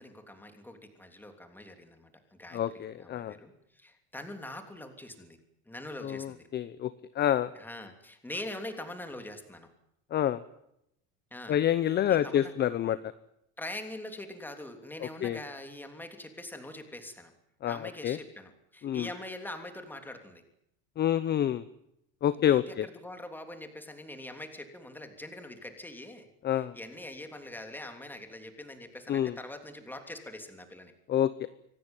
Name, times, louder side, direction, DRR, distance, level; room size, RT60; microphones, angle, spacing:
voice 1, 0.0-5.4 5.7-6.5 7.5-9.7 11.3-11.6 11.9-12.5 13.6-17.3 17.7-20.4 22.5-30.9, left 1 dB, 5° left, 6 dB, 3.2 m, -43 dB
voice 2, 2.5-3.3 6.0-6.9 7.2-7.5 10.1-10.4 11.5-13.0 15.0-15.4 17.6-18.2 18.8-19.1 21.0-21.6 22.2-22.9 26.4-26.7 29.1-29.3 31.1-31.5, left 10 dB, 30° left, 14 dB, 0.8 m, -27 dB
25.5 x 17.5 x 9.1 m, 0.79 s
cardioid pair, 145°, 34 cm